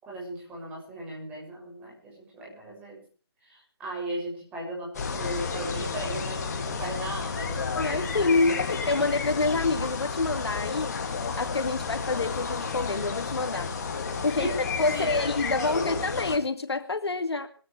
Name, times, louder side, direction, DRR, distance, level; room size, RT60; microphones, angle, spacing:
voice 1, 0.0-3.0 3.4-8.2 14.3-14.6 14.9-16.1, right 1 dB, 10° right, -3 dB, 7.1 m, -37 dB
sound 1, 4.9-16.4, left 5 dB, 40° left, 2.7 m, -31 dB
voice 2, 7.7-11.0 11.4-13.7 14.2-17.5, left 3 dB, 75° left, 8 dB, 2.3 m, -27 dB
22.5 x 17.0 x 3.4 m, 0.39 s
figure-of-eight pair, 160°, 14 cm